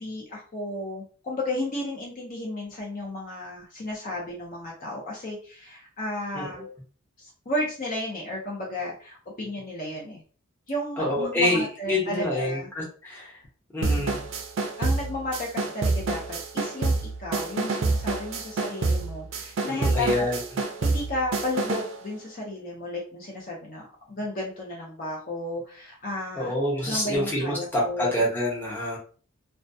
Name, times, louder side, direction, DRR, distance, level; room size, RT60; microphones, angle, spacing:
voice 1, 0.0-6.7 7.2-10.2 10.7-12.7 13.8-14.2 14.6-20.3 20.8-23.8 24.1-26.5 26.8-28.2, left 1 dB, 40° left, -3 dB, 0.6 m, -33 dB
voice 2, 6.3-6.7 11.0-13.4 13.7-14.2 19.6-20.4 26.3-29.0, left 1 dB, 10° left, -5 dB, 0.8 m, -27 dB
sound 1, 13.8-22.0, right 3 dB, 60° right, 0.4 m, -27 dB
2.2 x 2.2 x 2.6 m, 0.40 s
head